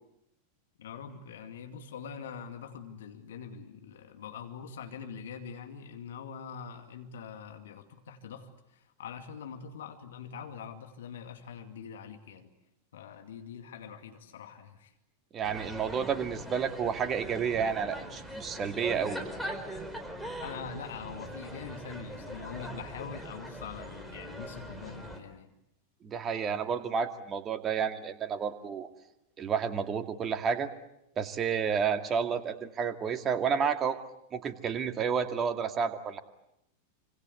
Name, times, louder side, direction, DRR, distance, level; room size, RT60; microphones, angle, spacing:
voice 1, 0.8-12.5 12.9-14.9 20.4-25.5, left 7 dB, 60° left, 6 dB, 2.4 m, -44 dB
voice 2, 15.3-19.2 26.0-28.9 29.4-30.7 31.2-34.0 34.3-36.2, right 7 dB, 25° right, 8 dB, 2.3 m, -30 dB
sound 1, 15.4-25.2, equal, ahead, 4.4 m, -41 dB
27.5 x 26.0 x 8.3 m, 0.82 s
figure-of-eight pair, 90°, 0 cm